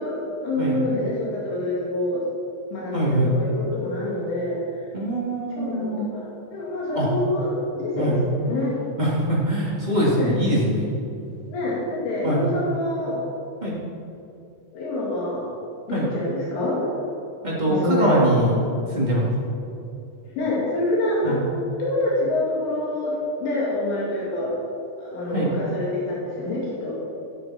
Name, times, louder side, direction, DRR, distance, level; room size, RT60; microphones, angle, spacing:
voice 1, 0.0-2.2 2.7-4.6 5.5-8.8 10.1-10.4 11.5-13.3 14.7-15.5 15.9-16.8 17.6-18.3 20.4-24.5 25.0-27.0, left 1 dB, 85° left, -6 dB, 5.1 m, -26 dB
voice 2, 2.9-3.3 4.9-6.0 6.9-7.1 8.0-8.2 9.0-10.9 12.2-12.4 13.6-13.8 15.9-16.1 17.4-18.6 18.9-19.3 21.2-21.4 25.3-25.5, right 1 dB, 30° right, -7 dB, 0.8 m, -23 dB
14.0 x 11.0 x 4.4 m, 2.6 s
omnidirectional pair, 5.4 m